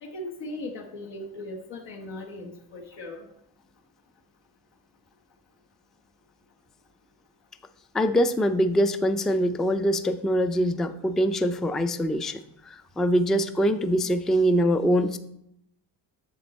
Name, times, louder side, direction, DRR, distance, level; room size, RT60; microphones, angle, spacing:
voice 1, 0.0-3.2, left 1 dB, 75° left, -2 dB, 1.2 m, -38 dB
voice 2, 7.9-12.4 12.7-15.2, equal, ahead, 10 dB, 0.3 m, -23 dB
7.7 x 6.6 x 4.1 m, 0.78 s
cardioid pair, 90°, 44 cm